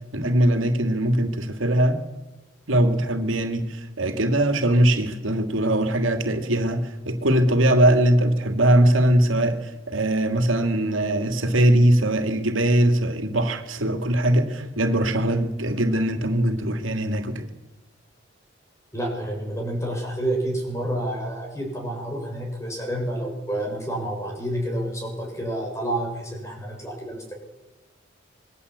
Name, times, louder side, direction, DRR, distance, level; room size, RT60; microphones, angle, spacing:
voice 1, 0.1-2.0 2.7-17.4, right 1 dB, 90° right, 6 dB, 2.8 m, -21 dB
voice 2, 18.9-27.3, right 1 dB, 15° left, 2 dB, 6.9 m, -29 dB
26.5 x 21.5 x 8.5 m, 1.1 s
head